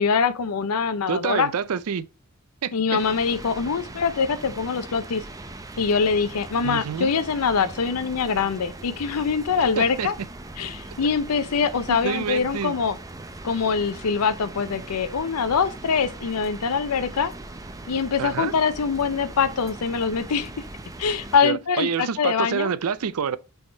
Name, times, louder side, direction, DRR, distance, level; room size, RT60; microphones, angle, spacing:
voice 1, 0.0-1.5 2.7-5.2 5.8-10.1 10.6-13.0 13.4-17.3 17.9-20.5 21.0-22.7, left 5 dB, 80° left, 0.6 m, -24 dB
voice 2, 1.1-2.1 2.6-3.0 6.6-7.1 9.8-10.1 11.9-12.8 18.2-18.5 21.4-23.4, right 6 dB, 75° right, 0.5 m, -27 dB
sound 1, 3.0-21.4, right 2 dB, 15° right, 0.5 m, -40 dB
6.3 x 3.6 x 4.4 m
head